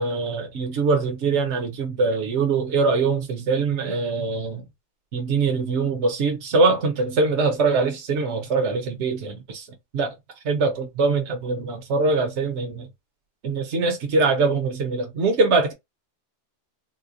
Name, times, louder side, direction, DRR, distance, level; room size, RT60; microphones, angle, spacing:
voice 1, 0.0-4.6 5.1-9.7 9.9-10.1 10.4-12.9 13.4-15.7, right 4 dB, 65° right, 1.1 m, -23 dB
4.0 x 2.1 x 2.5 m
omnidirectional pair, 1.3 m